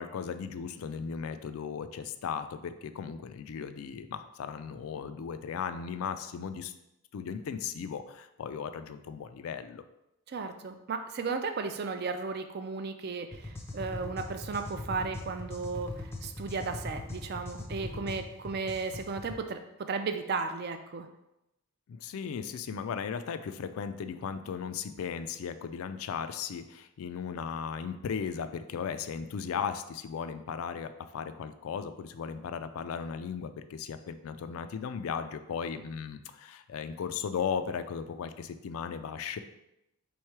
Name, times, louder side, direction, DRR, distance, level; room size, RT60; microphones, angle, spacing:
voice 1, 0.0-6.7 7.1-9.8 21.9-39.4, left 6 dB, 70° left, 10 dB, 0.3 m, -36 dB
voice 2, 10.3-21.1, right 4 dB, 45° right, 7 dB, 0.4 m, -35 dB
sound 1, 13.3-19.4, left 1 dB, 10° left, 0.5 m, -41 dB
3.6 x 3.1 x 4.6 m, 0.87 s
head